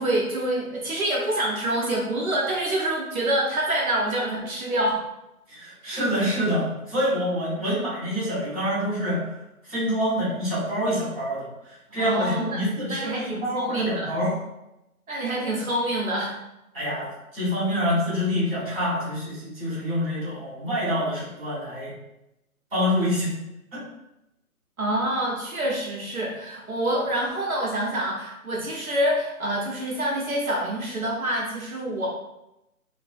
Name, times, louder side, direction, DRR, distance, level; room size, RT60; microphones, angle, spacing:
voice 1, 0.0-5.0 5.9-6.0 12.0-12.6 12.9-14.1 15.1-16.3 24.8-32.1, right 1 dB, 65° right, -3 dB, 0.9 m, -26 dB
voice 2, 5.5-9.2 9.7-14.4 16.7-21.9 22.7-23.3 23.7-23.8, equal, 5° right, -20 dB, 1.4 m, -26 dB
3.1 x 2.7 x 2.5 m, 0.90 s
hypercardioid pair, 165°, 45 cm